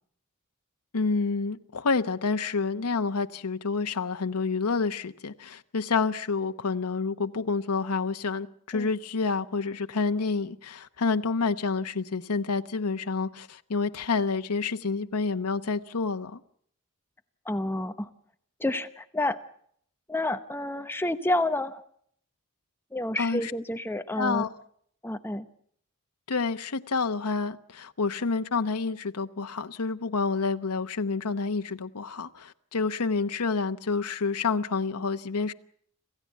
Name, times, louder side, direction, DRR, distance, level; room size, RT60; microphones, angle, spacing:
voice 1, 0.9-16.4 23.2-23.5 24.2-24.5 26.3-35.5, left 4 dB, 85° left, 0.9 m, -28 dB
voice 2, 17.4-18.1 18.6-19.4 20.1-21.8 22.9-24.5 25.0-25.5, left 1 dB, 10° left, 0.9 m, -29 dB
27.0 x 15.5 x 8.3 m
head